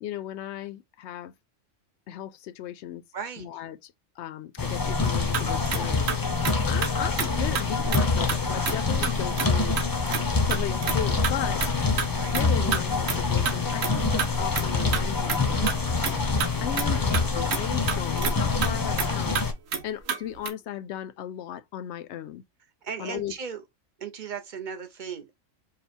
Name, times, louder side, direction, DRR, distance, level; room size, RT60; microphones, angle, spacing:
voice 1, 0.0-1.3 2.1-3.0 3.4-6.1 6.7-9.8 10.5-11.7 12.2-15.7 16.6-19.4 19.8-22.4 23.0-23.4, left 11 dB, 65° left, 0.8 m, -36 dB
voice 2, 3.1-3.5 12.2-12.3 16.5-17.1 19.0-19.2 22.8-23.6 24.0-25.3, right 6 dB, 40° right, 0.9 m, -37 dB
sound 1, 4.6-19.5, left 4 dB, 25° left, 0.5 m, -26 dB
sound 2, 5.3-6.9 7.2-7.3 7.6-7.7 7.9-8.0 8.3-8.4 8.7-8.8 9.0-9.5 9.7-10.2 10.5-11.0 11.2-11.3 11.6-12.1 12.3-12.4 12.7-12.8 13.1-13.2 13.5-13.6 13.8-14.3 14.5-14.7 14.9-15.8 16.0-16.1 16.4-17.3 17.5-17.6 17.9-18.3 18.6-18.7 19.0-19.1 19.4-19.5 19.7-19.8 20.1-20.2 20.5-20.6, right 7 dB, 80° right, 1.3 m, -28 dB
5.0 x 2.4 x 4.3 m
omnidirectional pair, 1.4 m